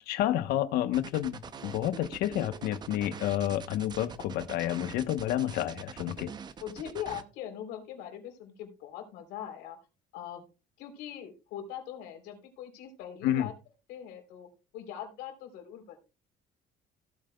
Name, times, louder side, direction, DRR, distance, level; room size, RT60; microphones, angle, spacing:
voice 1, 0.1-6.3 13.2-13.5, left 12 dB, 75° left, 11 dB, 1.0 m, -30 dB
sound 1, 0.9-7.2, right 7 dB, 25° right, 0.6 m, -44 dB
voice 2, 6.6-9.8 10.1-10.4 10.8-13.5 13.9-14.5 14.7-16.1, left 10 dB, 90° left, 4 dB, 3.5 m, -41 dB
16.5 x 8.9 x 2.3 m, 0.29 s
cardioid pair, 160°, 16 cm